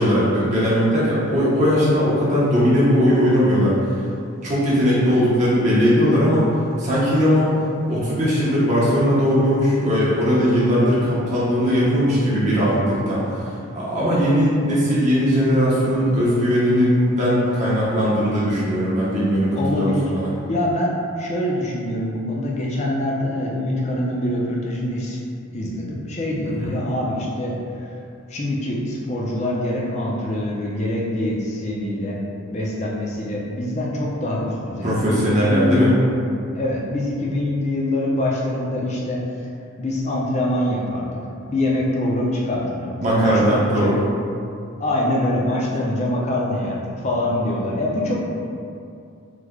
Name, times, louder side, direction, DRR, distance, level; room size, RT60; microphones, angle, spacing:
voice 1, 0.0-3.8 4.4-6.4 6.8-7.5 7.9-20.3 26.6-26.7 34.8-35.9 43.0-43.9, equal, 35° right, -9 dB, 0.7 m, -19 dB
voice 2, 19.5-20.1 20.5-27.9 28.3-32.2 32.5-36.0 36.5-39.2 39.8-41.2 41.5-44.0 44.8-48.4, left 1 dB, 30° left, -3 dB, 0.4 m, -24 dB
3.2 x 2.1 x 3.6 m, 2.5 s
head